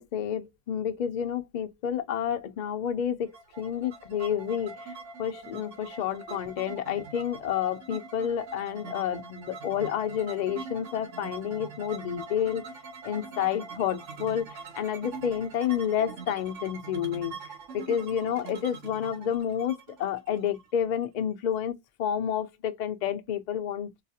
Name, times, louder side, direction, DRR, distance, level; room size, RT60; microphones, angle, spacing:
voice 1, 0.0-4.7 5.2-12.6 13.0-17.3 17.7-23.9, left 9 dB, 60° left, 0.4 m, -30 dB
sound 1, 3.3-21.0, right 4 dB, 80° right, 1.2 m, -43 dB
3.9 x 2.8 x 2.3 m
omnidirectional pair, 1.3 m